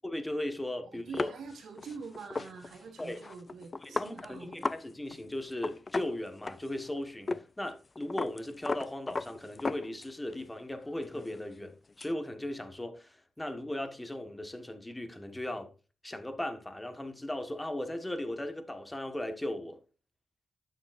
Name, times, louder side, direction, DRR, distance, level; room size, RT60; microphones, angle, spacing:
voice 1, 0.0-1.3 3.0-3.2 3.8-15.7 16.0-19.8, left 1 dB, 10° left, 1.4 m, -37 dB
voice 2, 0.8-4.6, right 5 dB, 85° right, 2.5 m, -45 dB
sound 1, 1.1-4.8 5.1-5.2 5.5-6.9 7.3-7.4 7.7-10.3 10.7-12.1, left 3 dB, 30° left, 0.4 m, -37 dB
9.8 x 7.2 x 2.5 m
cardioid pair, 95°, 0 cm